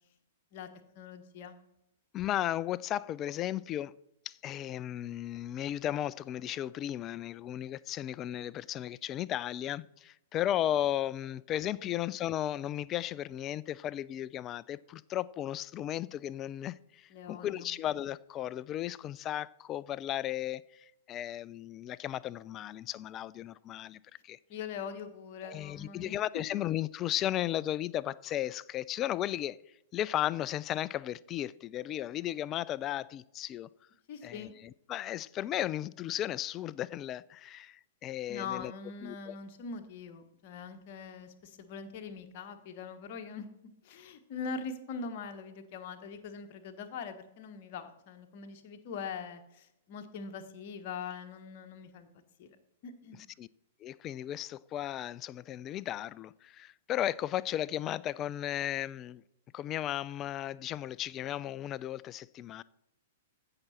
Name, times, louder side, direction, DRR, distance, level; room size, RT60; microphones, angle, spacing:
voice 1, 0.9-1.6 11.8-11.9 17.1-17.7 24.5-26.2 34.1-34.6 38.3-43.5 43.8-52.1 52.4-52.6 52.8-53.2, left 5 dB, 40° left, 1.2 m, -42 dB
voice 2, 2.1-3.9 4.3-24.0 24.2-24.4 25.4-29.6 29.9-33.7 34.2-38.7 39.0-39.4 53.4-53.5 53.8-59.2 59.5-62.6, left 12 dB, 25° left, 0.3 m, -35 dB
15.0 x 5.9 x 4.3 m
figure-of-eight pair, 105°, 0 cm